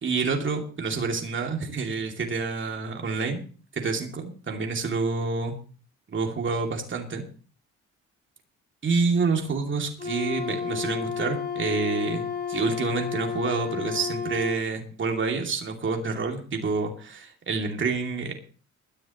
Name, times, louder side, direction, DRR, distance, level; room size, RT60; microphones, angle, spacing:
voice 1, 0.0-3.4 3.7-5.5 6.1-7.2 8.8-18.3, right 4 dB, 40° right, 2 dB, 2.7 m, -28 dB
Wind instrument woodwind instrument, 10.0-14.6, left 7 dB, 30° left, 6.7 m, -31 dB
22.0 x 10.5 x 3.1 m, 0.40 s
cardioid pair, 90°, 30 cm